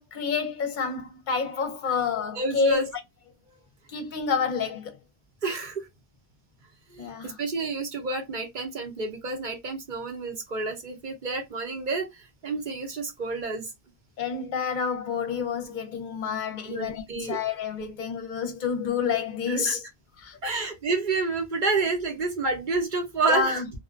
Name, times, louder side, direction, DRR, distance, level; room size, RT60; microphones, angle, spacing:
voice 1, 0.0-2.8 3.9-5.0 7.0-7.4 14.2-19.8 20.2-20.6 23.3-23.7, left 5 dB, 50° left, 0.7 m, -28 dB
voice 2, 2.4-2.8 5.4-5.9 6.9-13.7 16.7-17.4 19.5-19.8 20.4-23.6, right 3 dB, 50° right, 0.8 m, -29 dB
2.4 x 2.1 x 2.5 m
omnidirectional pair, 1.1 m